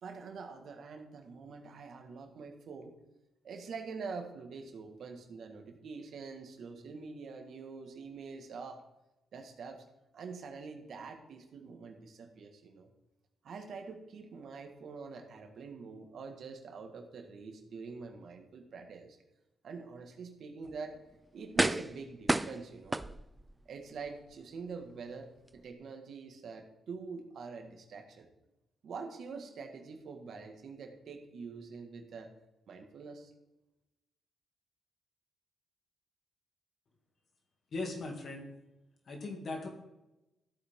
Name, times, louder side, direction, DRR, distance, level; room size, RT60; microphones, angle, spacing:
voice 1, 0.0-2.9 3.4-8.8 9.3-9.9 10.1-12.9 13.4-19.2 19.6-21.0 21.3-23.0 23.7-28.3 28.8-32.3 32.7-33.3, right 4 dB, 65° right, 4 dB, 1.8 m, -45 dB
sound 1, 20.6-20.8 21.6-22.0 22.3-23.5 24.1-24.2, right 2 dB, 15° right, 0.4 m, -30 dB
voice 2, 37.7-38.5 39.1-39.7, left 2 dB, 50° left, 2 dB, 2.5 m, -38 dB
13.5 x 8.4 x 3.8 m, 0.95 s
cardioid pair, 95°, 0 cm